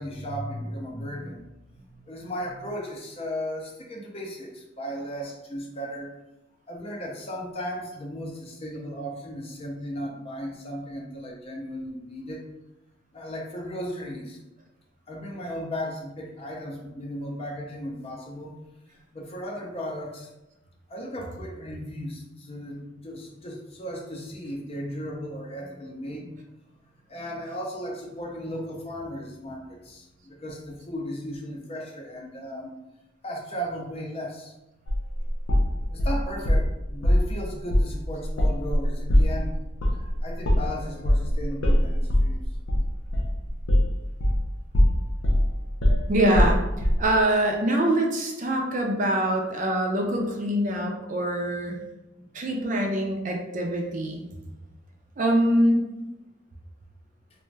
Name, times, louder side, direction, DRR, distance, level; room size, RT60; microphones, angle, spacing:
voice 1, 0.0-6.1 6.7-12.5 13.1-14.4 15.1-18.5 19.1-20.3 20.9-26.3 27.1-32.7 33.2-34.5 35.9-39.5 39.9-42.5 52.2-52.3, equal, 30° left, 0 dB, 0.5 m, -36 dB
sound 1, 34.9-36.7 37.0-37.3 37.7-37.9 38.2-44.5 44.7-47.0, left 1 dB, 85° left, 0.5 m, -22 dB
voice 2, 46.1-46.6 47.0-51.8 52.3-54.2 55.2-55.9, right 1 dB, 40° right, 1 dB, 0.4 m, -24 dB
2.5 x 2.2 x 3.1 m, 0.94 s
head